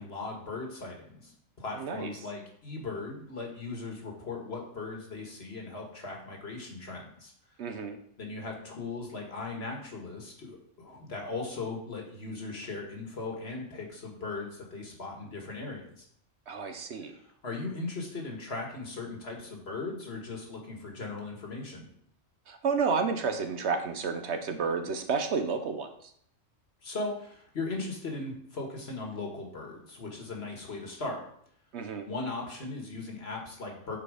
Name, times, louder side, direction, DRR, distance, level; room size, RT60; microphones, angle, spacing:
voice 1, 0.0-7.3 8.2-16.1 17.4-21.9 26.8-31.2 32.1-34.0, left 3 dB, 55° left, 1 dB, 1.8 m, -38 dB
voice 2, 1.7-2.1 7.6-8.0 16.5-17.1 22.5-26.1 31.7-32.1, right 5 dB, 65° right, 7 dB, 1.0 m, -31 dB
8.2 x 4.3 x 4.9 m, 0.66 s
omnidirectional pair, 1.3 m